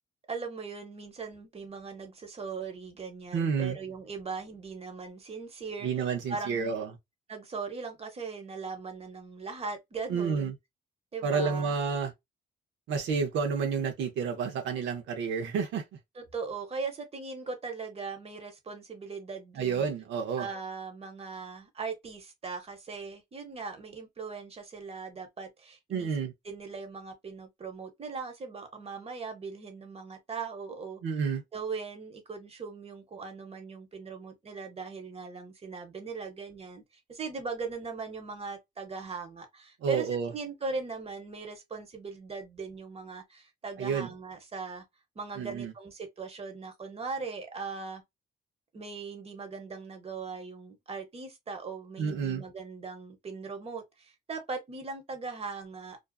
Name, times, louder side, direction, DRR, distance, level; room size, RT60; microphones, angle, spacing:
voice 1, 0.3-6.8 7.3-10.5 11.1-11.7 16.1-19.9 20.4-26.1 26.4-31.0 31.5-36.8 37.1-44.8 45.1-48.0 48.7-56.0, right 4 dB, 35° right, 0.9 m, -39 dB
voice 2, 3.3-3.8 5.8-6.9 10.1-10.5 11.2-12.1 12.9-15.8 19.6-20.5 25.9-26.3 31.0-31.4 39.8-40.3 43.8-44.1 45.4-45.7 52.0-52.4, right 6 dB, 85° right, 0.7 m, -30 dB
2.5 x 2.3 x 2.3 m
cardioid pair, 90°, 19 cm